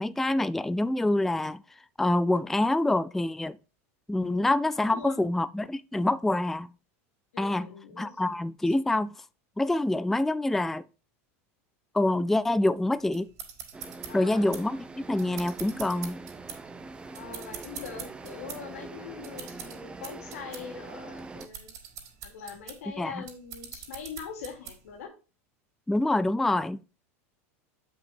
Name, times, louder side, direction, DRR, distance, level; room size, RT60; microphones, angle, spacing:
voice 1, 0.0-1.6 2.0-3.6 4.1-6.7 7.4-7.7 8.0-9.2 9.6-10.8 11.9-13.3 14.1-16.2 23.0-23.2 25.9-26.9, left 2 dB, 5° left, 0.3 m, -26 dB
voice 2, 4.8-5.2 7.3-8.2 8.7-8.8 14.1-14.5 17.1-21.7 22.2-25.1, left 6 dB, 85° left, 2.9 m, -42 dB
sound 1, 13.1-25.0, right 8 dB, 45° right, 3.9 m, -44 dB
sound 2, 13.7-21.5, right 3 dB, 15° right, 0.9 m, -44 dB
7.9 x 6.1 x 4.5 m
supercardioid pair, 120°, 8 cm